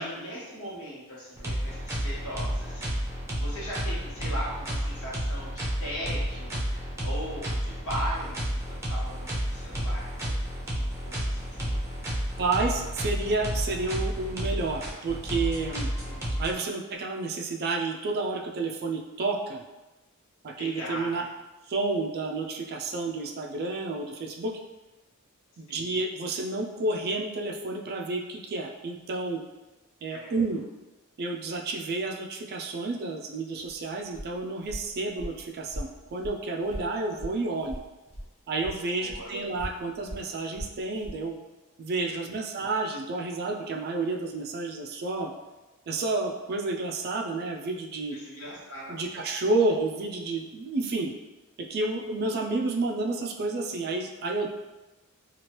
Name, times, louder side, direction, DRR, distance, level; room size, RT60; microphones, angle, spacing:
voice 1, 0.0-2.9 3.4-11.7 15.7-16.4 20.6-21.2 25.7-26.0 30.1-30.3 39.0-39.3 42.2-42.4 48.1-49.0, equal, 70° left, -8 dB, 1.3 m, -39 dB
sound 1, 1.4-16.5, equal, 15° right, 0.6 m, -31 dB
voice 2, 12.4-15.9 16.4-19.6 20.4-21.2 21.7-24.6 25.6-29.4 30.0-30.6 31.2-37.8 38.5-41.3 41.8-45.3 45.9-48.2 48.9-51.1 51.6-54.5, right 3 dB, 45° right, 1 dB, 0.4 m, -30 dB
Walk footsteps, 33.6-38.3 38.6-41.2, equal, 25° left, 0.9 m, -40 dB
3.0 x 2.4 x 2.9 m, 1.1 s
head